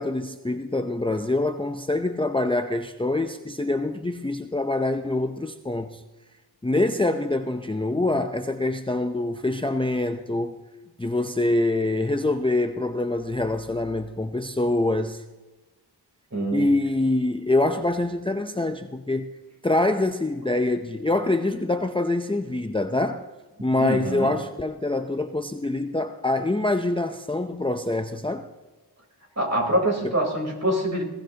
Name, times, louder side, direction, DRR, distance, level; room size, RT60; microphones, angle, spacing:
voice 1, 0.0-6.0 6.6-10.6 11.0-15.2 16.5-19.3 19.6-23.3 23.6-28.5 30.0-30.1, left 2 dB, 15° left, 0.6 m, -25 dB
voice 2, 16.3-16.7 23.8-24.3 29.4-31.0, right 1 dB, 40° right, 3.8 m, -25 dB
21.5 x 16.0 x 2.9 m
wide cardioid pair, 55°, 41 cm